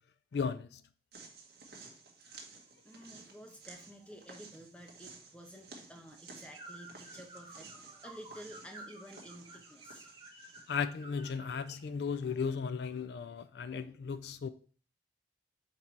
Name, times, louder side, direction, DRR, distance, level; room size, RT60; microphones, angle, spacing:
voice 1, 0.3-0.8 10.7-14.5, left 6 dB, 70° left, 0.4 m, -35 dB
sound 1, 1.1-10.8, right 4 dB, 60° right, 1.6 m, -54 dB
voice 2, 2.8-10.1, equal, 5° left, 1.0 m, -52 dB
sound 2, 6.5-11.9, right 2 dB, 25° right, 1.2 m, -52 dB
5.9 x 4.4 x 4.6 m
head